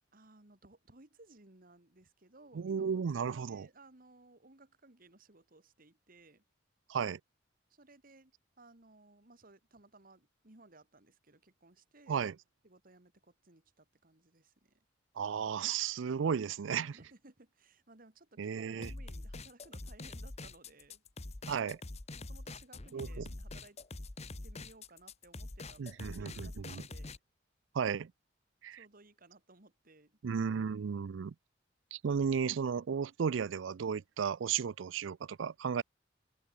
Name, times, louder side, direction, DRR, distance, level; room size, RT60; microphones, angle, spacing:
voice 1, 0.1-6.4 7.7-12.2 12.6-14.8 16.9-21.0 22.2-23.8 24.4-27.2 28.7-30.6, right 2 dB, 45° right, 2.5 m, -60 dB
voice 2, 2.5-3.7 6.9-7.2 12.1-12.3 15.2-17.0 18.4-18.9 21.5-21.8 22.9-23.3 25.8-26.8 27.7-28.1 28.6-28.8 30.2-31.3 31.9-35.8, right 6 dB, 80° right, 0.4 m, -34 dB
sound 1, 18.8-27.2, left 2 dB, 35° left, 1.2 m, -45 dB
head